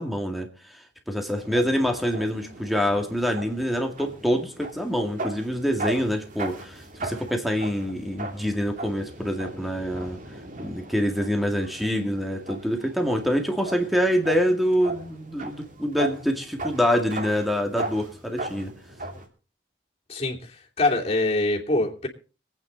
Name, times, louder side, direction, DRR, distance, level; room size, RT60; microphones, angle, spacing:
voice 1, 0.0-10.2 10.6-18.7, equal, ahead, 2.0 m, -26 dB
sound 1, 1.3-19.3, right 2 dB, 45° right, 2.9 m, -38 dB
voice 2, 20.1-22.1, left 2 dB, 35° left, 3.1 m, -24 dB
25.0 x 9.3 x 4.0 m
head